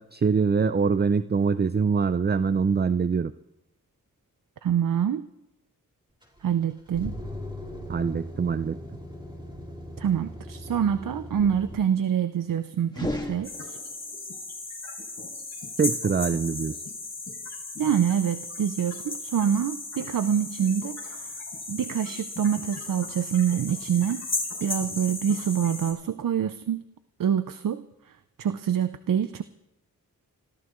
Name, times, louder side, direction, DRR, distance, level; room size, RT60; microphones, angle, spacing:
voice 1, 0.0-3.3 7.9-8.8 15.8-16.8, right 5 dB, 30° right, 13 dB, 0.5 m, -24 dB
voice 2, 4.6-5.3 6.4-7.1 10.0-13.8 17.8-21.3 21.7-24.2 24.6-26.8 27.2-27.8 28.4-29.4, right 8 dB, 70° right, 11 dB, 0.7 m, -26 dB
sound 1, 6.2-11.8, equal, 15° right, 4.2 m, -39 dB
sound 2, 12.9-14.2, left 1 dB, 10° left, 2.0 m, -34 dB
sound 3, 13.4-25.9, left 3 dB, 50° left, 5.4 m, -36 dB
26.0 x 15.5 x 3.1 m, 0.88 s
cardioid pair, 65°, 34 cm